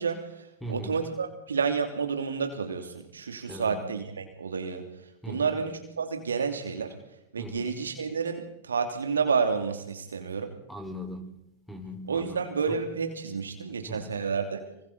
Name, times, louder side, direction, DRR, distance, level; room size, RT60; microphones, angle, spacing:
voice 1, 0.0-4.8 5.3-6.9 7.3-10.5 12.1-14.6, right 5 dB, 70° right, 5 dB, 2.8 m, -30 dB
voice 2, 0.6-1.0 3.5-3.9 5.2-5.6 7.4-7.8 10.7-11.3 11.7-12.4 12.7-12.8 13.9-14.2, equal, 5° left, 5 dB, 4.7 m, -39 dB
26.5 x 25.0 x 4.1 m, 0.83 s
figure-of-eight pair, 90°, 0 cm